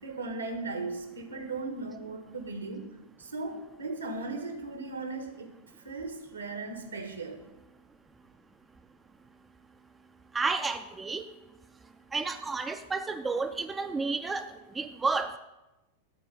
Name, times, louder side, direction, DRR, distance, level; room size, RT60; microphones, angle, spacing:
voice 1, 0.0-2.9 3.2-5.5 5.8-7.4, right 3 dB, 75° right, 6 dB, 1.5 m, -37 dB
voice 2, 10.3-11.2 12.1-14.5 14.8-15.3, right 4 dB, 15° right, 7 dB, 0.5 m, -31 dB
12.5 x 4.6 x 8.1 m, 1.0 s
figure-of-eight pair, 90°, 0 cm